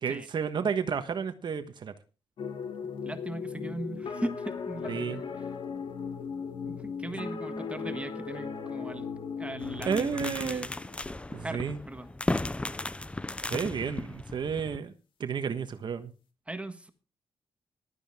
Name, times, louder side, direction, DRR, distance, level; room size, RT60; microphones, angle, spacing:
voice 1, 0.0-1.9 4.9-5.2 9.8-10.7 11.3-11.8 13.5-14.9 15.2-16.1, right 6 dB, 55° right, 9 dB, 1.3 m, -31 dB
sound 1, 2.4-11.6, left 6 dB, 70° left, 2.5 m, -37 dB
voice 2, 3.0-5.4 6.6-9.1 9.4-10.7 11.4-12.1 13.5-14.1 16.5-16.9, right 1 dB, 15° right, 8 dB, 1.5 m, -39 dB
sound 2, 9.6-14.8, left 2 dB, 15° left, 0.6 m, -35 dB
15.0 x 12.5 x 3.6 m, 0.34 s
cardioid pair, 85°, 9 cm